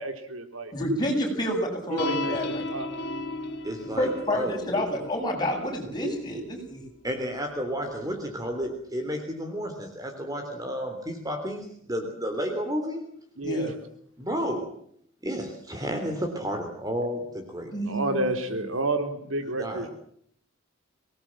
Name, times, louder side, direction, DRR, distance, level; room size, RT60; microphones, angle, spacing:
voice 1, 0.0-0.7 1.9-2.9 13.4-13.7 17.9-19.9, right 2 dB, 90° right, 7 dB, 3.8 m, -30 dB
voice 2, 0.7-2.6 4.0-6.8 13.4-13.7 17.7-18.2, equal, 20° left, 1 dB, 7.9 m, -28 dB
sound 1, 2.0-8.6, left 2 dB, 55° left, 2.5 m, -37 dB
voice 3, 3.6-4.6 7.0-13.0 14.2-14.7 15.2-17.7 19.6-19.9, equal, 20° right, 5 dB, 3.3 m, -31 dB
25.0 x 20.0 x 7.7 m, 0.66 s
head